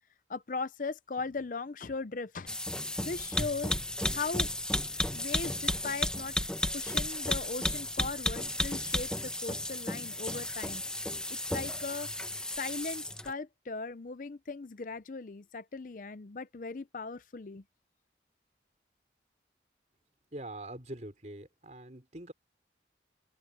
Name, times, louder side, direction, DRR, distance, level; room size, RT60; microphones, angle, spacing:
voice 1, 0.3-2.5 3.0-3.8 4.1-4.5 5.1-6.4 6.7-10.8 11.3-12.1 12.6-17.6, left 4 dB, 45° left, 0.5 m, -38 dB
sound 1, 2.5-13.3, left 1 dB, 5° left, 1.1 m, -33 dB
voice 2, 20.3-22.3, right 1 dB, 40° right, 4.2 m, -44 dB
open air
head